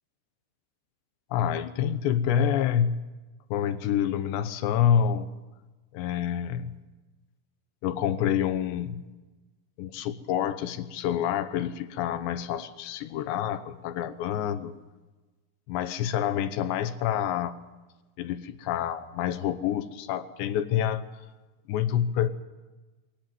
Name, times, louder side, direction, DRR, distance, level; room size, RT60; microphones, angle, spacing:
voice 1, 1.3-3.0 3.5-5.3 5.9-6.7 7.8-9.0 9.8-14.7 15.7-17.6 18.2-21.1 21.7-22.3, left 9 dB, 75° left, 11 dB, 2.8 m, -27 dB
23.5 x 18.0 x 9.4 m, 1.2 s
omnidirectional pair, 5.9 m